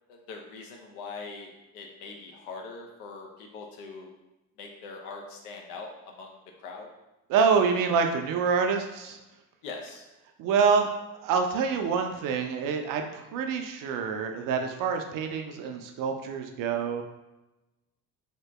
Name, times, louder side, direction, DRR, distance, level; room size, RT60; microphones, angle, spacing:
voice 1, 0.1-4.1 4.6-6.9 9.6-10.0, left 4 dB, 70° left, 1 dB, 0.8 m, -42 dB
voice 2, 7.3-9.2 10.4-10.9 11.2-17.0, right 5 dB, 45° right, 5 dB, 0.5 m, -26 dB
2.8 x 2.7 x 3.4 m, 1.0 s
hypercardioid pair, 60°, 46 cm